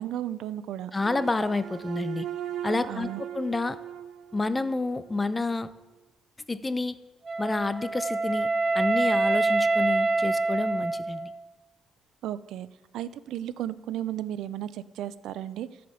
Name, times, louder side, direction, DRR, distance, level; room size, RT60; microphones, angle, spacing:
voice 1, 0.0-0.9 2.9-3.2 12.2-12.7 12.9-15.7, right 12 dB, 85° right, 16 dB, 0.5 m, -34 dB
voice 2, 0.9-2.3 2.6-3.1 3.3-3.8 4.3-5.7 6.5-7.0 7.4-11.3, left 3 dB, 20° left, 14 dB, 0.6 m, -29 dB
sound 1, 1.0-5.3, right 10 dB, 65° right, 1.5 m, -38 dB
Wind instrument woodwind instrument, 7.3-11.4, right 3 dB, 35° right, 0.8 m, -26 dB
13.5 x 5.1 x 7.0 m, 1.1 s
cardioid pair, 90°, 0 cm